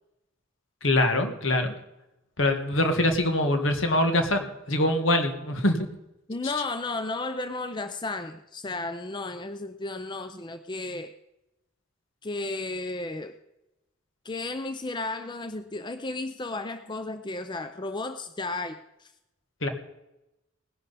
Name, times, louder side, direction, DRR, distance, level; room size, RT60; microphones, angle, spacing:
voice 1, 0.8-1.7 2.4-5.8 19.6-19.7, left 1 dB, 70° left, 6 dB, 1.8 m, -24 dB
voice 2, 6.3-11.1 12.2-13.3 14.2-19.1, left 2 dB, 25° left, 10 dB, 0.5 m, -33 dB
18.5 x 11.0 x 4.1 m, 0.92 s
head